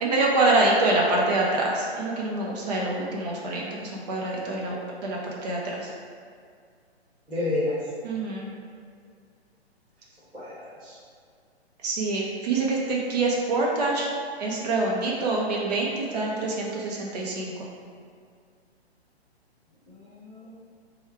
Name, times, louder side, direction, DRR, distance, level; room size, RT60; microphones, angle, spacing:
voice 1, 0.0-5.9 8.0-8.5 11.8-14.1 14.4-17.5, right 2 dB, 40° right, -3 dB, 0.7 m, -25 dB
voice 2, 7.3-7.9 10.3-11.0 19.9-20.5, left 2 dB, 5° right, -15 dB, 0.5 m, -31 dB
3.2 x 2.3 x 4.4 m, 2.1 s
hypercardioid pair, 140°, 32 cm